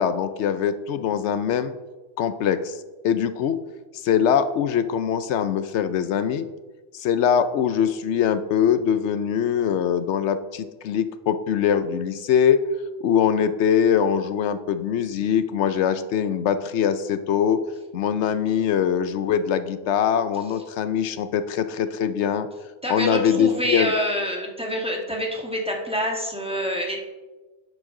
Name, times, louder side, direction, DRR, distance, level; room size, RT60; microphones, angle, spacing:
voice 1, 0.0-1.7 2.2-2.8 3.0-3.6 3.9-6.5 6.9-12.6 13.0-17.6 17.9-22.5 22.9-23.9, left 8 dB, 80° left, 11 dB, 0.9 m, -22 dB
voice 2, 22.8-27.0, equal, 5° right, 0 dB, 1.5 m, -26 dB
10.5 x 7.9 x 3.7 m, 1.2 s
omnidirectional pair, 1.2 m